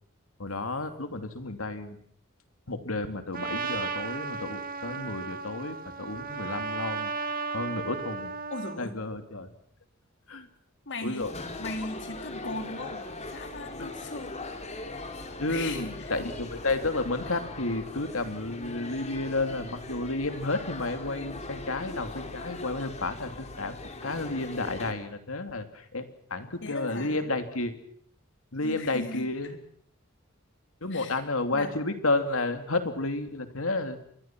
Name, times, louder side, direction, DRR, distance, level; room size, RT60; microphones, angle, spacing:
voice 1, 0.4-2.0 2.7-7.1 7.5-8.3 8.8-9.5 10.3-10.5 11.0-11.3 12.4-12.5 13.8-13.9 15.4-23.8 24.0-26.0 26.3-27.8 28.5-29.6 30.8-34.0, left 2 dB, 80° left, 8 dB, 2.7 m, -31 dB
Trumpet, 3.3-8.8, right 4 dB, 45° right, 1.9 m, -34 dB
voice 2, 8.5-8.9 10.9-11.3 11.6-14.4 14.7-15.0 15.5-16.2 26.6-27.3 28.6-29.6 30.9-31.2 31.5-31.7, left 2 dB, 60° left, 6 dB, 3.6 m, -38 dB
sound 1, 11.2-24.9, left 2 dB, 35° left, 3.1 m, -40 dB
28.5 x 23.0 x 6.1 m, 0.65 s
head